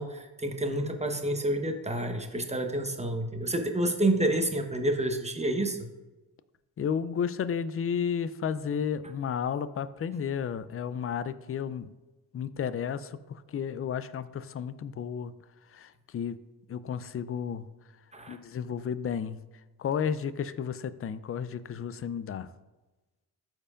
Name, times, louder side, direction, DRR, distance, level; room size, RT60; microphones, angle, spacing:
voice 1, 0.0-5.8 18.1-18.4, right 1 dB, 15° right, 4 dB, 1.0 m, -29 dB
voice 2, 6.8-11.9 12.3-15.3 15.7-16.4 16.7-17.7 18.3-19.4 19.8-22.5, left 7 dB, 30° left, 15 dB, 0.4 m, -32 dB
12.5 x 4.5 x 2.5 m, 1.1 s
supercardioid pair, 55°, 47 cm